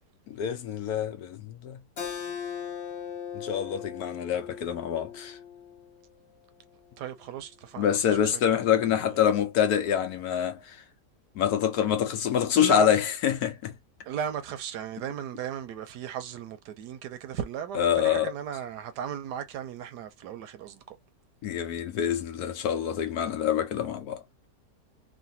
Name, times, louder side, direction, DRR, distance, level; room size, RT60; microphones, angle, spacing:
voice 1, 0.3-1.8 3.3-5.4 7.8-10.8 11.4-13.7 17.7-18.3 21.4-24.2, left 9 dB, 70° left, 1.1 m, -26 dB
Keyboard (musical), 2.0-7.2, left 8 dB, 50° left, 0.9 m, -39 dB
voice 2, 7.0-9.2 12.5-13.0 14.0-21.0, right 9 dB, 80° right, 1.2 m, -36 dB
3.2 x 2.5 x 2.6 m
omnidirectional pair, 1.8 m